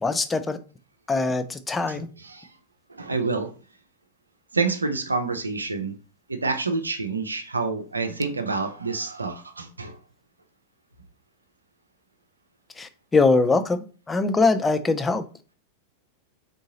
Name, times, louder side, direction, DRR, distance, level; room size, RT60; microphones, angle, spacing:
voice 1, 0.0-0.6 1.1-2.1 12.8-13.8 14.1-15.2, left 3 dB, 15° left, 10 dB, 0.4 m, -22 dB
voice 2, 1.9-2.5 2.9-3.5 4.5-6.0 6.3-10.0, right 4 dB, 80° right, 6 dB, 0.5 m, -28 dB
3.8 x 3.6 x 2.8 m, 0.37 s
figure-of-eight pair, 90°, 0 cm